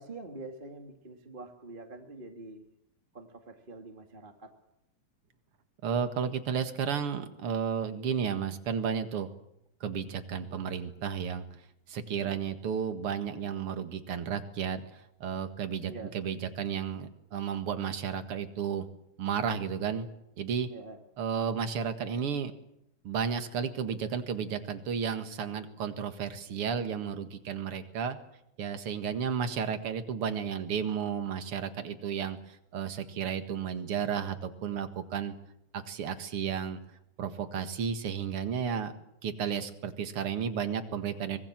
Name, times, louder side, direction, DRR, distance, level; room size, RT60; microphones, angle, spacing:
voice 1, 0.0-2.6 3.1-4.5 12.1-12.4 15.9-16.1 20.7-21.0 33.9-34.2, right 2 dB, 20° right, 4 dB, 1.8 m, -45 dB
voice 2, 5.8-9.3 9.8-11.4 11.9-18.9 19.2-20.1 20.4-20.7 21.2-22.5 23.0-28.2 28.6-35.3 35.7-36.8 37.2-38.9 39.2-41.4, right 7 dB, 50° right, 8 dB, 2.2 m, -33 dB
25.0 x 21.5 x 7.5 m, 0.81 s
omnidirectional pair, 4.0 m